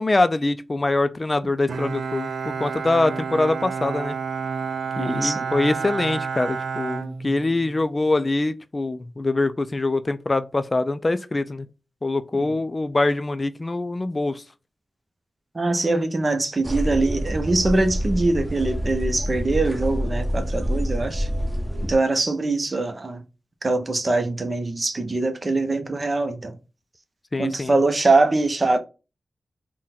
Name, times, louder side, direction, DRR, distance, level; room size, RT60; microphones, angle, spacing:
voice 1, 0.0-4.2 5.0-11.7 12.0-14.4 27.3-27.8, left 2 dB, 35° left, 0.3 m, -24 dB
Bowed string instrument, 1.7-7.8, right 5 dB, 80° right, 0.4 m, -30 dB
voice 2, 5.0-5.5 12.4-12.5 15.5-21.3 21.9-23.2 23.6-26.5 27.4-28.8, right 2 dB, 45° right, 0.7 m, -23 dB
sound 1, 16.6-21.9, equal, 10° right, 1.0 m, -27 dB
3.7 x 2.2 x 4.1 m
cardioid pair, 45°, 0 cm